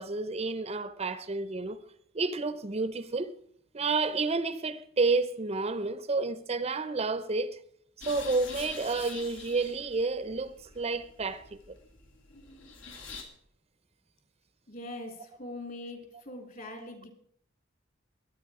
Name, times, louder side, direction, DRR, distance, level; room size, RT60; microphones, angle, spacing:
voice 1, 0.0-1.8 2.1-3.3 3.7-7.6 8.1-11.8, right 3 dB, 35° right, 0.6 m, -30 dB
sound 1, 8.0-13.2, left 4 dB, 80° left, 3.0 m, -46 dB
voice 2, 14.7-17.1, left 2 dB, 45° left, 3.1 m, -42 dB
21.5 x 8.9 x 4.8 m
head